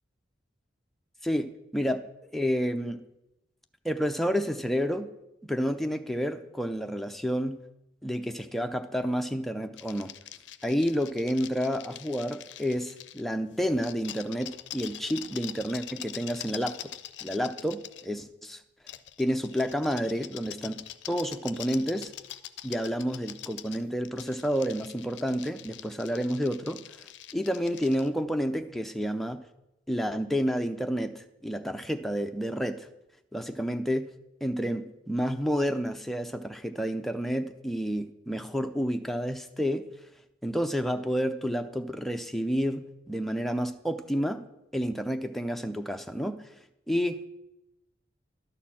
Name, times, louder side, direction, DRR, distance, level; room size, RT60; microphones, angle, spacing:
voice 1, 1.2-2.1 2.3-3.0 3.8-5.1 5.4-7.6 8.0-10.1 10.6-16.9 17.2-18.6 19.2-22.1 22.6-26.8 27.3-29.4 29.9-32.9 33.3-34.1 34.4-39.9 40.4-44.4 44.7-46.5 46.9-47.3, equal, ahead, 6 dB, 0.4 m, -30 dB
sound 1, 9.8-13.2 13.6-18.1 18.9-28.1, left 12 dB, 75° left, 0.4 m, -44 dB
12.0 x 4.3 x 7.3 m, 0.91 s
head